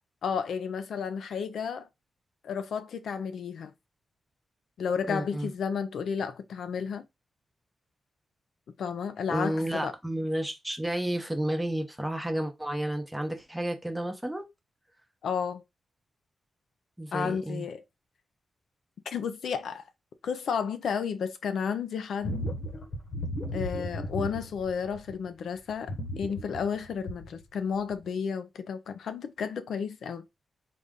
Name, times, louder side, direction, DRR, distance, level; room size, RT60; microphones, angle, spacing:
voice 1, 0.2-1.9 2.4-3.7 4.8-7.0 8.8-9.9 15.2-15.6 17.1-17.8 19.1-19.8 20.2-22.4 23.5-30.2, left 6 dB, 90° left, 0.5 m, -32 dB
voice 2, 5.1-5.5 9.3-14.4 17.0-17.6, right 1 dB, 5° right, 0.8 m, -31 dB
sound 1, 22.2-25.3 25.7-27.4 27.9-28.0, left 1 dB, 60° left, 1.1 m, -35 dB
4.1 x 2.5 x 3.5 m
wide cardioid pair, 140°, 0 cm